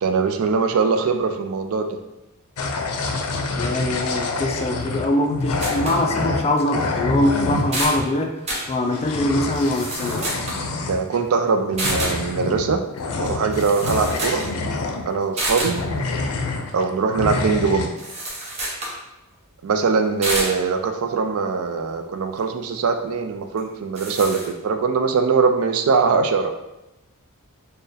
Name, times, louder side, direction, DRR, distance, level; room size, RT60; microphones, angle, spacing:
voice 1, 0.0-2.0 10.9-12.9 13.2-14.5 15.1-15.9 16.7-18.0 19.6-26.5, right 5 dB, 65° right, 6 dB, 0.4 m, -22 dB
sound 1, 2.6-8.0 8.6-11.2 11.7-15.4 15.6-16.9 17.1-17.9, left 3 dB, 85° left, 0.5 m, -27 dB
voice 2, 3.6-8.4 8.7-10.3, left 1 dB, 30° left, 4 dB, 0.3 m, -23 dB
sound 2, 5.6-6.0 6.6-6.7 7.2-7.3 7.6-8.0 8.5-8.7 9.5-10.6 11.8-12.2 13.3-13.4 13.5-14.5 14.8-14.9 15.4-15.8 18.0-19.0 20.2-20.6 23.6-23.7 23.9-24.5, right 1 dB, 30° right, 0.8 m, -28 dB
4.3 x 2.2 x 3.3 m, 0.95 s
head